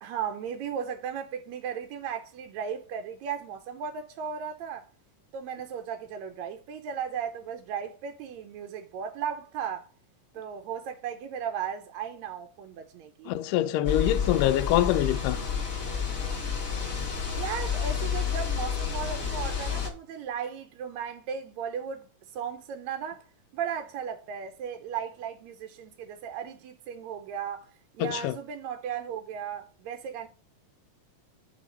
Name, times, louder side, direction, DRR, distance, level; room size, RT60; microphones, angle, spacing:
voice 1, 0.0-4.8 5.3-9.9 10.3-13.3 17.3-22.1 22.3-23.3 23.5-27.7 27.9-30.3, right 7 dB, 75° right, 1.8 m, -36 dB
voice 2, 13.3-15.4 28.0-28.4, left 13 dB, 85° left, 2.1 m, -25 dB
sound 1, 13.8-19.9, left 6 dB, 40° left, 1.3 m, -30 dB
6.8 x 3.6 x 5.2 m
omnidirectional pair, 3.7 m